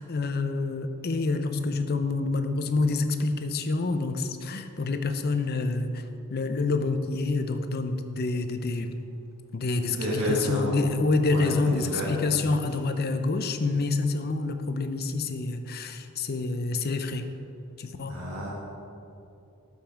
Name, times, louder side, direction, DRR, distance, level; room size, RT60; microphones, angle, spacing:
voice 1, 0.0-6.0 6.3-8.9 9.5-17.3 17.8-18.2, left 3 dB, 45° left, 8 dB, 0.6 m, -27 dB
voice 2, 9.9-10.8 11.2-12.4 18.1-18.5, equal, 75° right, -7 dB, 1.8 m, -30 dB
12.0 x 5.5 x 4.5 m, 2.7 s
head